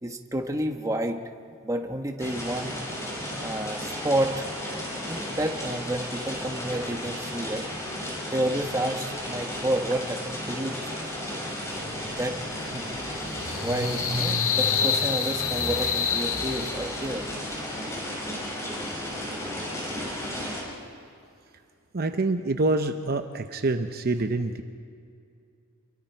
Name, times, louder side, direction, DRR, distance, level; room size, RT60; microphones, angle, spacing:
voice 1, 0.0-1.2 1.6-2.7 3.4-4.5 5.1-7.6 8.3-10.8 12.2-12.9 13.6-17.3, right 1 dB, 15° right, 4 dB, 1.2 m, -30 dB
sound 1, 2.2-20.6, equal, 15° left, 5.5 m, -34 dB
sound 2, 11.3-17.2, left 7 dB, 70° left, 1.7 m, -29 dB
Car / Engine starting, 11.7-11.8 12.1-17.3, right 1 dB, 75° right, 4.8 m, -37 dB
voice 2, 21.9-24.6, right 2 dB, 45° right, 7 dB, 0.8 m, -26 dB
29.0 x 23.0 x 4.5 m, 2.5 s
head